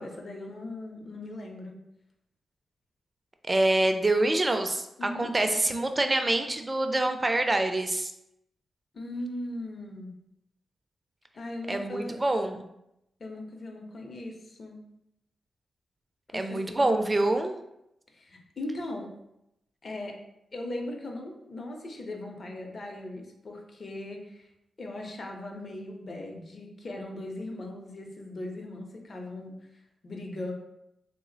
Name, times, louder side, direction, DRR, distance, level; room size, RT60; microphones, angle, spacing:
voice 1, 0.0-1.8 5.0-5.3 8.9-10.1 11.3-12.2 13.2-14.8 16.3-17.0 18.1-19.1 19.8-20.2 20.5-24.5 24.8-29.7 30.0-30.5, left 1 dB, 45° left, 2 dB, 0.6 m, -39 dB
voice 2, 3.5-8.1 11.7-12.6 16.3-17.5, right 2 dB, 25° right, 6 dB, 0.3 m, -26 dB
3.1 x 2.0 x 3.8 m, 0.83 s
cardioid pair, 90°, 0 cm